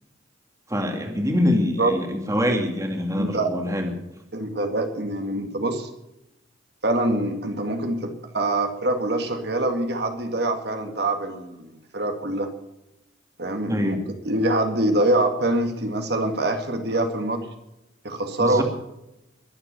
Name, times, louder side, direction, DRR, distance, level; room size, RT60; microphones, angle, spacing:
voice 1, 0.7-3.9 13.7-14.0 18.4-18.6, left 1 dB, 15° right, 3 dB, 2.4 m, -24 dB
voice 2, 3.1-3.5 4.3-5.9 6.8-12.5 13.4-14.0 14.2-17.5 18.0-18.6, right 1 dB, 55° right, 5 dB, 2.1 m, -24 dB
22.0 x 8.3 x 6.8 m, 0.89 s
head